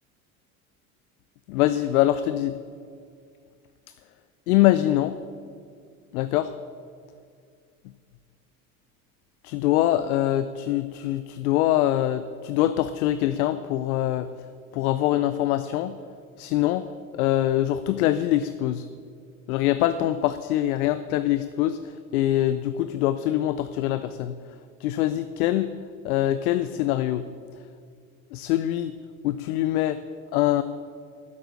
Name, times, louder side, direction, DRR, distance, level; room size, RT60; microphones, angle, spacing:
voice 1, 1.5-2.6 4.5-5.2 6.1-6.5 9.4-14.3 14.7-16.0 16.4-16.9 17.1-18.8 19.5-21.8 22.1-24.3 24.8-25.7 26.0-27.3 28.3-28.9 29.2-30.0 30.3-30.6, left 13 dB, 85° left, 12 dB, 0.5 m, -24 dB
9.4 x 7.9 x 6.6 m, 2.2 s
hypercardioid pair, 75°, 43 cm